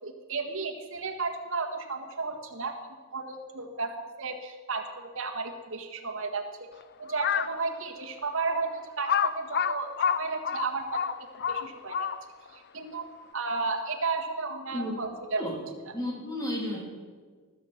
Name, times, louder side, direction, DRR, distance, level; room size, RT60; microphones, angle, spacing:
voice 1, 0.0-2.8 3.1-6.5 7.0-11.0 11.5-12.1 12.5-15.4 15.8-15.9, right 4 dB, 60° right, 3 dB, 1.6 m, -33 dB
Crow, 7.1-7.6 8.2-8.3 9.1-12.5, left 7 dB, 50° left, 0.5 m, -28 dB
voice 2, 15.9-16.8, left 1 dB, 15° left, -2 dB, 3.1 m, -32 dB
19.0 x 7.5 x 7.3 m, 1.5 s
head